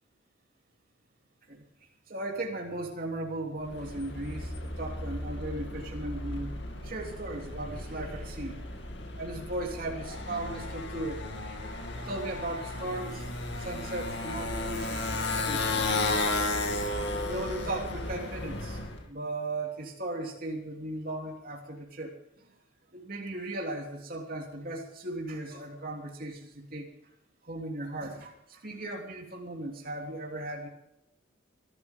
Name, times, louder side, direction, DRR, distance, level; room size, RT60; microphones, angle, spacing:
voice 1, 2.1-8.7 9.1-16.0 17.2-18.8 19.1-22.5 22.9-26.9 27.4-30.7, right 2 dB, 45° right, 0 dB, 3.2 m, -37 dB
Motorcycle, 3.6-19.0, left 2 dB, 60° left, 2.6 m, -34 dB
23.5 x 13.5 x 3.7 m, 0.80 s
head